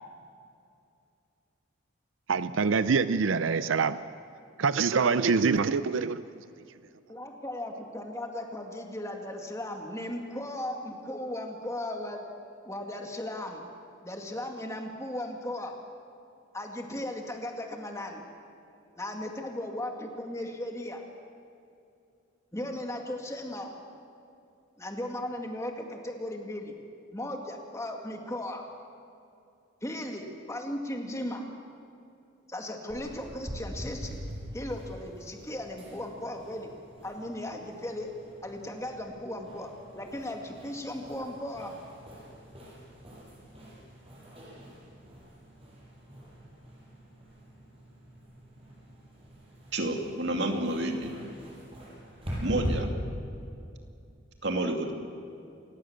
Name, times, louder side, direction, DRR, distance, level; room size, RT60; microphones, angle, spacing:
voice 1, 2.3-4.0 4.6-6.2, right 5 dB, 80° right, 13 dB, 0.5 m, -25 dB
voice 2, 7.1-12.2 12.6-13.6 14.0-15.7 16.5-18.2 19.0-21.0 22.5-23.7 24.8-26.7 27.1-28.6 29.8-31.4 32.5-34.2 34.5-36.7 37.0-38.1 38.4-39.7 39.9-41.7, left 1 dB, 15° left, 2 dB, 2.1 m, -36 dB
sound 1, 32.9-52.7, equal, 30° right, 7.8 m, -44 dB
voice 3, 49.7-51.2 52.4-52.9 54.4-54.9, right 1 dB, 60° right, 3 dB, 2.4 m, -29 dB
29.0 x 16.5 x 7.3 m, 2.6 s
head